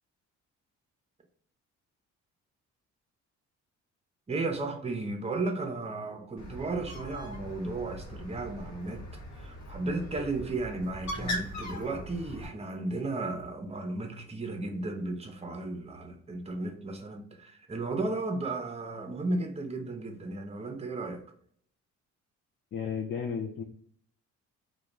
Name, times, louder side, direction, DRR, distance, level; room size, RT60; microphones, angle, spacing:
voice 1, 4.3-9.1 9.4-21.2, right 2 dB, 20° right, 0.5 m, -34 dB
Bird, 6.4-12.5, left 1 dB, 60° left, 0.9 m, -40 dB
voice 2, 22.7-23.6, left 6 dB, 40° left, 0.4 m, -33 dB
2.4 x 2.2 x 3.0 m
cardioid pair, 90°, 30 cm